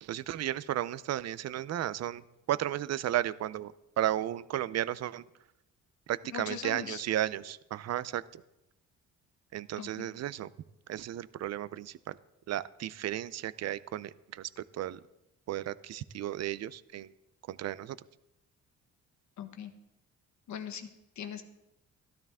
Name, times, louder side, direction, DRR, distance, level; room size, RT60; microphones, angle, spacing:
voice 1, 0.0-2.2 2.5-5.2 6.1-8.4 9.5-10.5 10.9-12.2 12.5-15.0 15.5-17.1 17.5-18.0, right 12 dB, 60° right, 18 dB, 0.6 m, -34 dB
voice 2, 6.3-7.0 9.8-10.1 19.4-19.7 20.5-20.9 21.2-21.4, left 7 dB, 70° left, 6 dB, 1.3 m, -40 dB
13.0 x 12.5 x 3.6 m, 0.88 s
cardioid pair, 90°, 30 cm